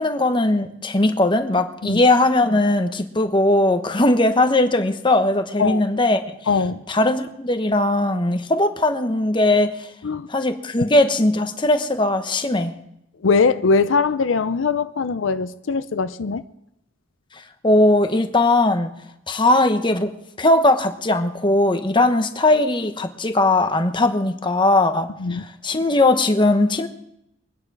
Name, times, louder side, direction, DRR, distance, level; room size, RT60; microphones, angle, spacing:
voice 1, 0.0-6.2 6.9-9.9 10.3-12.7 17.6-18.9 19.3-20.1 20.4-26.9, left 2 dB, 25° left, 1.0 m, -19 dB
voice 2, 6.5-6.8 10.0-10.3 10.8-10.9 13.2-16.4 25.2-25.4, left 4 dB, 90° left, 0.5 m, -21 dB
23.0 x 9.7 x 4.8 m
head